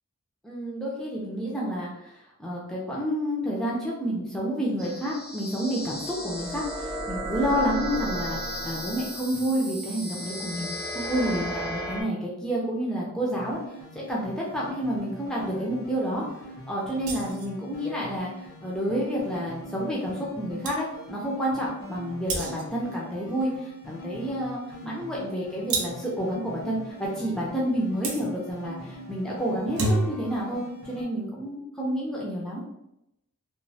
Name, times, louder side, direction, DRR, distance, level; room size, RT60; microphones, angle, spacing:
voice 1, 0.4-2.1 2.4-13.6 14.1-16.3 16.7-18.3 18.6-32.6, equal, 5° left, -5 dB, 0.4 m, -29 dB
sound 1, 4.8-12.0, right 1 dB, 30° right, 0.7 m, -34 dB
sound 2, 13.4-31.0, equal, 65° left, 0.7 m, -43 dB
sound 3, 17.0-17.5 20.2-20.3 20.6-20.8 22.3-22.8 25.7-26.1 28.0-28.2 29.5-30.4, right 2 dB, 85° right, 0.5 m, -29 dB
3.0 x 2.0 x 2.6 m, 0.85 s
head